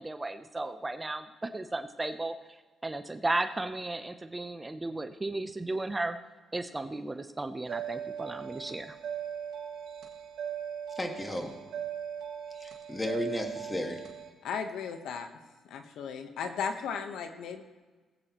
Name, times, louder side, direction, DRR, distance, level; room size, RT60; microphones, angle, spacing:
voice 1, 0.0-6.2 6.5-9.0, right 2 dB, 20° right, 9 dB, 0.6 m, -35 dB
sound 1, 7.7-14.3, right 8 dB, 70° right, 1.9 m, -39 dB
voice 2, 10.9-11.5 12.6-14.0, left 1 dB, 15° left, 3 dB, 1.7 m, -34 dB
voice 3, 14.4-15.3 15.6-17.6, left 6 dB, 80° left, 7 dB, 1.0 m, -35 dB
20.0 x 8.3 x 3.0 m, 1.3 s
cardioid pair, 90°, 0 cm